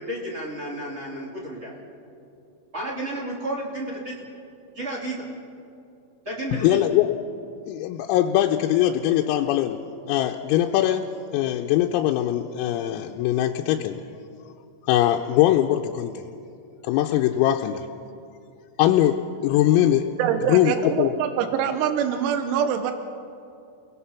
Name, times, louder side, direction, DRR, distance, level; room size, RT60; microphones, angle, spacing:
voice 1, 0.0-1.7 2.7-4.1 4.7-5.2 6.2-6.8, right 1 dB, 25° right, -3 dB, 1.6 m, -32 dB
voice 2, 6.6-7.1 7.7-9.8 10.1-11.1 11.3-14.0 14.9-16.2 16.8-17.9 18.8-20.1 20.5-21.1, left 12 dB, 90° left, 2 dB, 3.4 m, -21 dB
voice 3, 20.2-22.9, right 8 dB, 90° right, 8 dB, 3.7 m, -24 dB
29.5 x 19.5 x 5.7 m, 2.6 s
omnidirectional pair, 6.0 m